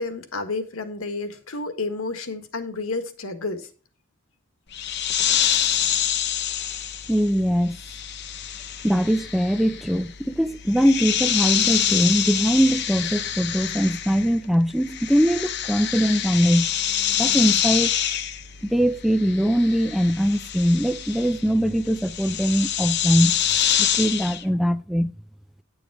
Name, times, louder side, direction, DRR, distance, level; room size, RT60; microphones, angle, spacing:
voice 1, 0.0-3.7, left 3 dB, 80° left, 1.6 m, -30 dB
sound 1, 4.7-14.5 14.7-24.4, left 9 dB, 55° left, 0.9 m, -26 dB
voice 2, 7.1-7.7 8.8-16.7 17.2-17.9 18.6-23.3 23.8-25.1, equal, ahead, 0.4 m, -21 dB
10.0 x 7.1 x 4.7 m
head